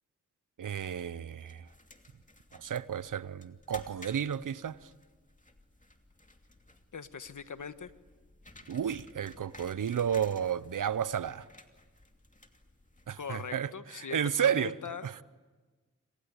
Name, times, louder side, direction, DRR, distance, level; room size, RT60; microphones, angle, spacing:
voice 1, 0.6-1.7 2.5-4.9 8.7-11.5 13.1-14.7 15.0-15.2, right 8 dB, 85° right, 0.8 m, -32 dB
sound 1, 1.4-13.5, left 2 dB, 25° left, 2.7 m, -56 dB
voice 2, 6.9-7.9 13.2-15.1, left 6 dB, 75° left, 1.4 m, -41 dB
27.5 x 26.0 x 8.3 m
cardioid pair, 50°, 31 cm